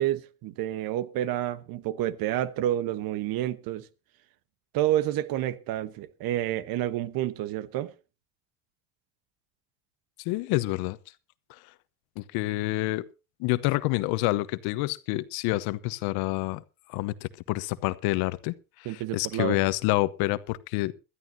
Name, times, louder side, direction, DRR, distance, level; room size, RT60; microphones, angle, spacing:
voice 1, 0.0-3.9 4.7-7.9 18.8-19.6, right 13 dB, 60° right, 1.1 m, -29 dB
voice 2, 10.2-11.0 11.5-11.6 12.2-13.1 13.4-16.6 16.9-20.9, left 19 dB, 70° left, 1.0 m, -28 dB
21.5 x 13.0 x 2.7 m
supercardioid pair, 95°, 40 cm